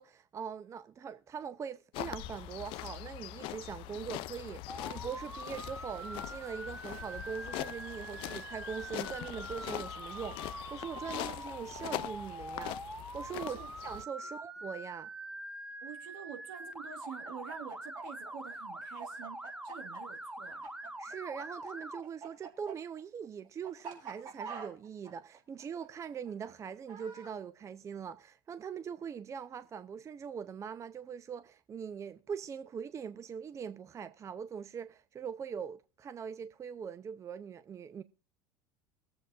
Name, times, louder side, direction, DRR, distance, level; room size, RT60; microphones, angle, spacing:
voice 1, 0.0-12.8 13.1-15.1 21.0-38.0, right 7 dB, 30° right, 0.5 m, -42 dB
sound 1, 1.9-14.0, left 15 dB, 60° left, 0.5 m, -42 dB
Motor vehicle (road) / Siren, 4.7-22.0, right 1 dB, 10° right, 1.1 m, -44 dB
voice 2, 15.8-20.7, right 8 dB, 70° right, 2.0 m, -48 dB
Chicken rooster, 17.0-21.4 21.7-27.3, right 6 dB, 45° right, 4.3 m, -46 dB
23.0 x 7.8 x 2.5 m
hypercardioid pair, 85°, 10 cm